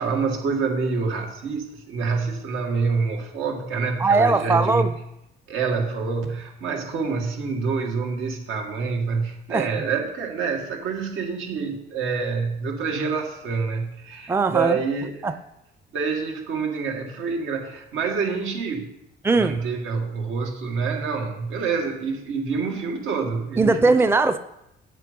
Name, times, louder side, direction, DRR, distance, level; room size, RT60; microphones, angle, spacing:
voice 1, 0.0-4.9 5.5-15.3 15.9-18.9 19.3-23.9, right 5 dB, 85° right, 2.1 m, -27 dB
voice 2, 4.0-4.9 9.5-9.7 14.3-14.8 15.2-15.3 19.2-19.6 23.6-24.4, right 3 dB, 10° right, 0.5 m, -19 dB
8.5 x 7.6 x 5.3 m
cardioid pair, 90°, 20 cm